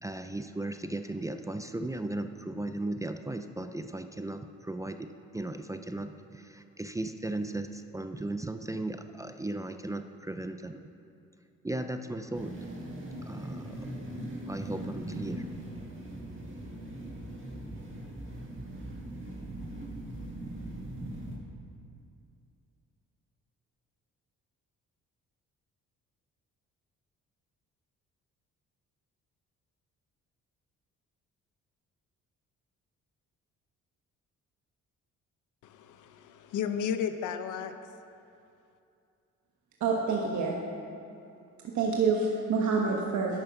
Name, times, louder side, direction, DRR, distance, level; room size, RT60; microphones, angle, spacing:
voice 1, 0.0-10.9 11.6-12.6 13.2-15.5, right 2 dB, 10° right, 8 dB, 0.4 m, -37 dB
sound 1, 12.3-21.4, right 1 dB, 40° right, 1.9 m, -40 dB
voice 2, 35.6-37.8, left 7 dB, 80° left, 9 dB, 0.7 m, -33 dB
voice 3, 39.8-40.6 41.7-43.4, right 4 dB, 70° right, -1 dB, 1.2 m, -27 dB
10.0 x 8.8 x 5.8 m, 2.6 s
cardioid pair, 100°, 30 cm